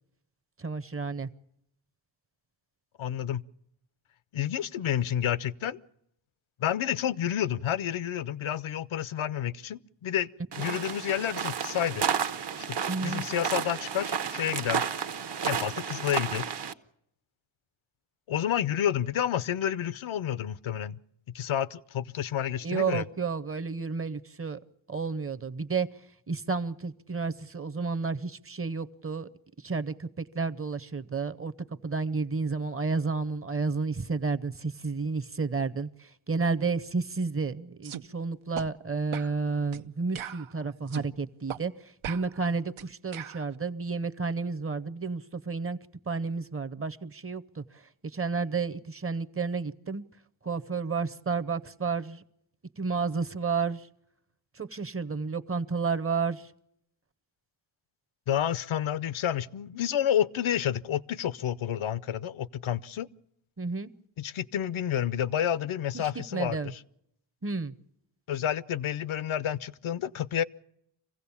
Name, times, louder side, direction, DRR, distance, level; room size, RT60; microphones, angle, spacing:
voice 1, 0.6-1.3 10.6-10.8 12.9-13.3 22.6-24.6 24.9-25.9 26.3-29.3 29.6-31.5 31.8-45.8 46.1-47.6 48.1-50.0 50.4-52.2 52.8-53.9 54.6-56.5 63.6-63.9 65.9-66.7 67.4-67.7, right 4 dB, 30° right, 0.7 m, -31 dB
voice 2, 3.0-3.4 4.3-5.8 6.6-10.3 10.6-12.1 12.6-14.9 15.4-16.4 18.3-21.0 21.3-23.0 58.3-63.1 64.2-66.8 68.3-70.4, left 10 dB, 85° left, 0.7 m, -30 dB
sound 1, 10.5-16.7, right 7 dB, 60° right, 0.9 m, -32 dB
sound 2, 37.8-38.0 38.6-38.7 39.1-39.3 39.7-39.9 40.2-41.1 41.5-41.6 42.0-43.4, right 10 dB, 90° right, 0.8 m, -39 dB
25.0 x 16.0 x 7.1 m
wide cardioid pair, 140°, 47 cm